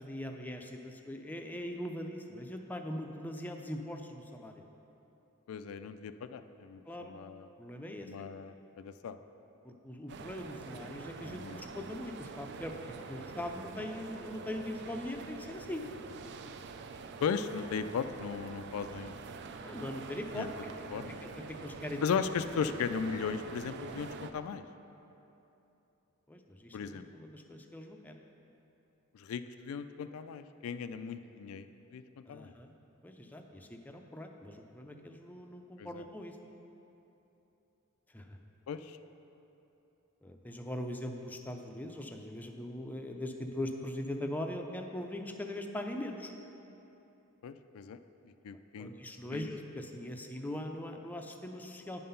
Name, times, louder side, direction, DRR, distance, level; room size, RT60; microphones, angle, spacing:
voice 1, 0.0-4.7 6.9-7.1 7.6-8.1 9.6-15.8 19.6-22.0 26.3-28.2 32.3-32.7 33.0-36.4 38.1-38.4 40.2-46.3 48.8-52.1, left 1 dB, 10° left, 3 dB, 0.4 m, -41 dB
voice 2, 5.5-7.5 8.0-9.2 11.4-11.6 17.2-19.1 20.3-20.5 20.9-21.3 22.0-24.6 26.7-27.1 29.1-31.7 31.9-32.5 35.8-36.0 38.7-39.0 47.4-48.0 48.4-48.9 49.3-49.4, left 6 dB, 75° left, 10 dB, 0.3 m, -37 dB
sound 1, 10.1-24.3, right 4 dB, 55° right, 0.4 m, -46 dB
9.3 x 5.7 x 5.5 m, 3.0 s
head